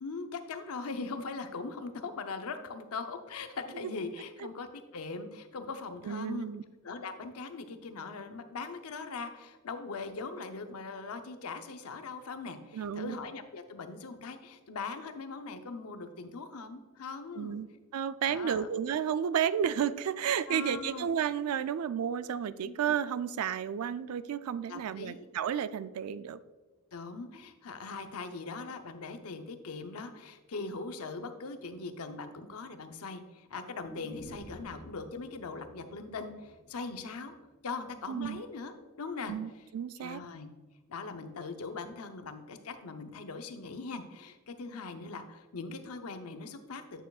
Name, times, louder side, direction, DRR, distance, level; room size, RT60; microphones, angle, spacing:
voice 1, 0.0-6.5 6.8-17.6 18.3-18.7 20.5-21.1 22.6-22.7 24.7-25.3 26.9-37.3 37.6-39.3 40.0-40.5 40.9-47.0, left 4 dB, 90° left, 7 dB, 0.7 m, -41 dB
voice 2, 6.0-6.6 12.7-13.2 17.4-17.7 17.9-26.4 36.9-37.0 38.1-38.4 39.3-40.2, right 8 dB, 85° right, 14 dB, 0.3 m, -32 dB
sound 1, 33.8-37.8 38.1-38.2, equal, 10° left, 1.5 m, -52 dB
8.9 x 6.8 x 2.4 m, 1.2 s
head